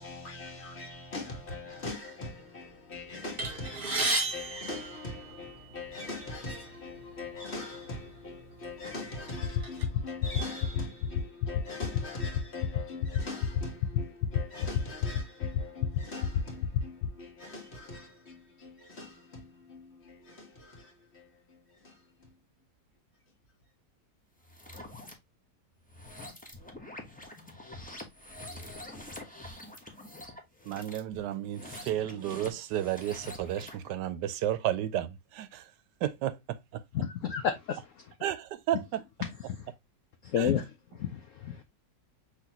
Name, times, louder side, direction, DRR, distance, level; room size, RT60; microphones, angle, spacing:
voice 1, 0.0-21.6 21.8-22.3, left 2 dB, 40° left, 1.7 m, -42 dB
sound 1, 3.4-5.7 6.5-6.7 7.0-7.2 8.0-8.2 8.7-9.8, right 2 dB, 35° right, 1.4 m, -33 dB
sound 2, 9.4-17.1, left 11 dB, 85° left, 1.3 m, -28 dB
sound 3, 24.4-25.1 25.8-33.9, left 1 dB, 10° left, 0.6 m, -46 dB
voice 2, 30.7-35.7 36.0-36.8 38.2-39.0 40.4-40.5, right 12 dB, 80° right, 1.2 m, -32 dB
voice 3, 36.9-37.8 39.5-39.6 40.2-40.7 40.9-41.6, left 8 dB, 65° left, 0.8 m, -30 dB
5.8 x 3.1 x 2.8 m
omnidirectional pair, 1.9 m